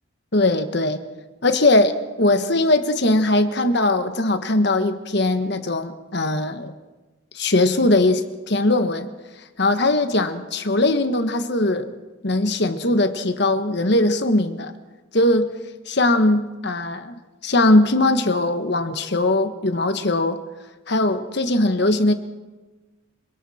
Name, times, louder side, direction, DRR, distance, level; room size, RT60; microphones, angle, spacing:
voice 1, 0.3-1.0 1.4-6.7 7.3-9.1 9.6-11.9 12.2-14.7 15.1-15.5 15.9-17.1 17.4-20.4 20.9-22.1, left 2 dB, 55° left, 8 dB, 1.4 m, -20 dB
26.5 x 24.5 x 4.3 m, 1.2 s
head